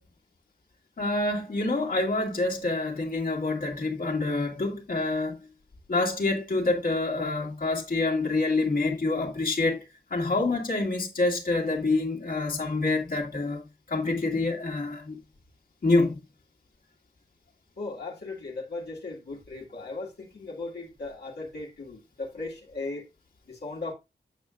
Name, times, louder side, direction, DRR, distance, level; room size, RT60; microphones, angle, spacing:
voice 1, 1.0-5.4 5.9-9.8 10.1-15.2 15.8-16.2, left 2 dB, 55° left, 2.0 m, -27 dB
voice 2, 17.8-23.1 23.5-23.9, left 3 dB, 70° left, 1.9 m, -37 dB
8.4 x 7.3 x 2.4 m
wide cardioid pair, 160°, 18 cm